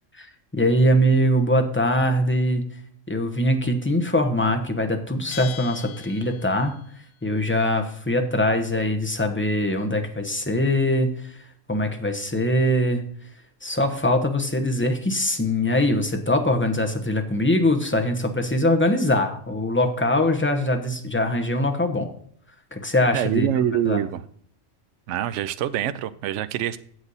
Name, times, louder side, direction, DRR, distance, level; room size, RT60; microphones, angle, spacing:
voice 1, 0.5-2.6 3.1-6.7 7.2-11.4 11.7-13.0 13.6-22.1 22.7-23.5 23.8-24.0, left 1 dB, 10° left, 5 dB, 0.9 m, -22 dB
Bell, 5.3-6.9, left 12 dB, 70° left, 1.0 m, -40 dB
voice 2, 23.1-24.2 25.1-26.8, right 11 dB, 70° right, 13 dB, 0.9 m, -25 dB
8.1 x 8.0 x 4.0 m, 0.64 s
omnidirectional pair, 1.3 m